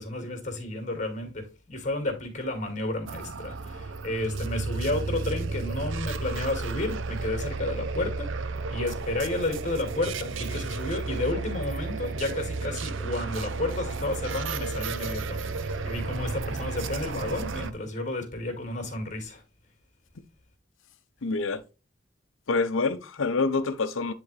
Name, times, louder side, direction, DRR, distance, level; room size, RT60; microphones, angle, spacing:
voice 1, 0.0-19.4, left 2 dB, 40° left, 2.2 m, -32 dB
sound 1, 3.1-17.7, right 3 dB, 75° right, 0.6 m, -33 dB
voice 2, 21.2-21.6 22.5-24.1, left 4 dB, 85° left, 0.7 m, -26 dB
9.6 x 3.9 x 3.2 m
head